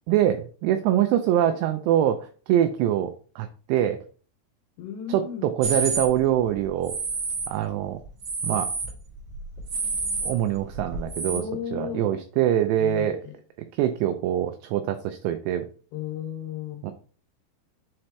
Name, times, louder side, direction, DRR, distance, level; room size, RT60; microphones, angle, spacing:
voice 1, 0.1-4.0 5.1-5.2 5.5-6.9 7.5-8.0 8.4-8.7 10.2-11.4 11.7-13.2 13.7-15.7 16.8-16.9, right 11 dB, 85° right, 2.5 m, -24 dB
voice 2, 4.8-5.5 11.3-12.1 12.8-13.4 15.9-16.8, left 8 dB, 70° left, 3.1 m, -34 dB
sound 1, 5.6-6.1 6.8-7.5 8.0-9.0 9.3-11.4, right 4 dB, 35° right, 2.0 m, -29 dB
7.6 x 4.4 x 3.2 m
omnidirectional pair, 5.3 m